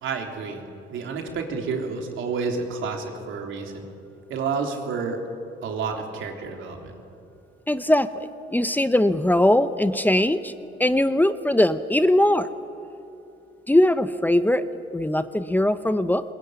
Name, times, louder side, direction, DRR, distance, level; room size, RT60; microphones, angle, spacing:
voice 1, 0.0-3.8 4.3-5.2 5.6-6.9, right 5 dB, 75° right, 3 dB, 3.4 m, -30 dB
voice 2, 7.7-10.5 10.8-12.5 13.7-14.7 14.9-16.2, left 1 dB, 10° left, 11 dB, 0.9 m, -20 dB
20.5 x 20.5 x 9.6 m, 2.7 s
cardioid pair, 90°, 20 cm